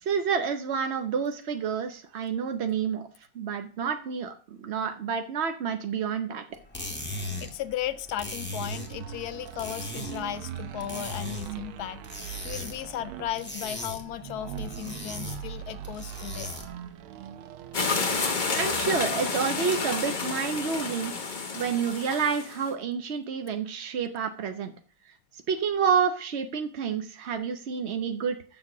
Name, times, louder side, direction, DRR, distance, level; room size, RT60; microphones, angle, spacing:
voice 1, 0.0-3.1 3.3-6.4 18.5-21.1 21.5-24.7 25.1-28.4, right 6 dB, 65° right, 0.6 m, -29 dB
sound 1, 6.5-16.9, left 1 dB, 5° left, 1.3 m, -39 dB
voice 2, 7.1-16.6, left 12 dB, 70° left, 0.9 m, -36 dB
sound 2, 8.4-19.2, right 9 dB, 90° right, 1.6 m, -41 dB
sound 3, 17.7-22.7, left 4 dB, 35° left, 0.8 m, -30 dB
7.4 x 6.5 x 7.1 m
omnidirectional pair, 2.2 m